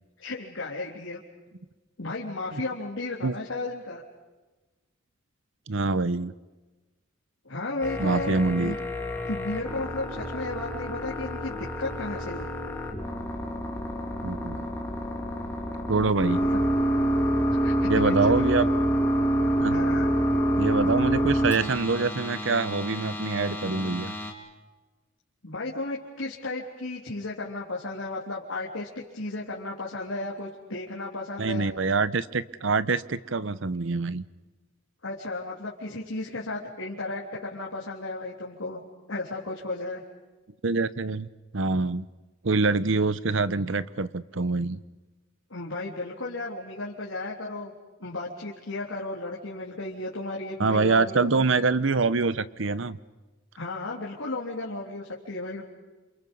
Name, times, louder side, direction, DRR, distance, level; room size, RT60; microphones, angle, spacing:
voice 1, 0.2-1.2 2.0-4.0 7.4-8.7 9.2-12.5 16.4-16.6 17.6-18.4 19.7-20.1 25.4-31.7 35.0-38.8 39.1-40.0 45.5-47.7 48.0-51.4 53.5-55.6, left 2 dB, 80° left, -4 dB, 3.5 m, -34 dB
voice 2, 5.7-6.3 8.0-8.7 14.2-14.7 15.9-16.4 17.9-18.7 19.6-19.8 20.6-24.1 31.4-34.2 40.6-41.3 41.5-42.1 42.4-44.8 50.6-53.0, right 3 dB, 70° right, 16 dB, 0.8 m, -25 dB
sound 1, 7.8-24.3, equal, 10° left, 3.2 m, -27 dB
29.0 x 28.0 x 5.5 m, 1.2 s
head